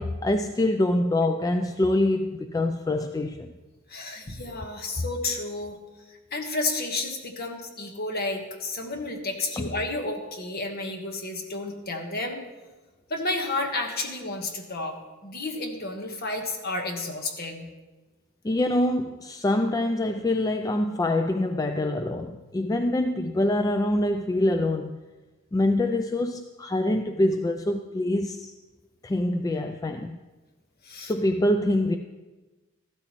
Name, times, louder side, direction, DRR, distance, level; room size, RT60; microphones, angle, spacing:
voice 1, 0.0-3.5 9.6-9.7 18.4-25.0 25.5-28.5 29.0-30.2 31.0-32.0, left 1 dB, 15° left, 0.3 m, -25 dB
voice 2, 3.9-5.8 6.1-12.4 13.1-17.7 30.8-31.1, left 2 dB, 45° left, 1.3 m, -31 dB
13.5 x 12.5 x 3.1 m
head